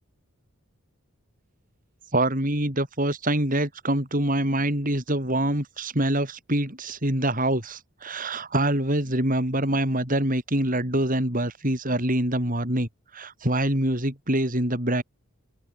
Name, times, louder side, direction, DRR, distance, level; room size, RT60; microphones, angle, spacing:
voice 1, 2.1-15.0, right 1 dB, 40° right, 6.7 m, -25 dB
open air
head